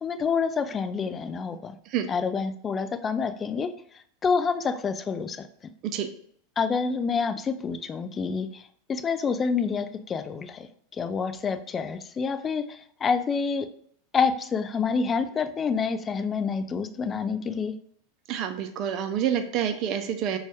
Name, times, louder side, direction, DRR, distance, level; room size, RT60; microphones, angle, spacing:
voice 1, 0.0-1.7 2.1-3.7 4.2-5.5 6.6-10.7 10.9-13.7 14.1-17.7, left 5 dB, 25° left, 9 dB, 0.3 m, -27 dB
voice 2, 18.3-20.4, right 9 dB, 45° right, 7 dB, 0.5 m, -27 dB
4.0 x 2.3 x 3.3 m, 0.63 s
figure-of-eight pair, 85°, 0 cm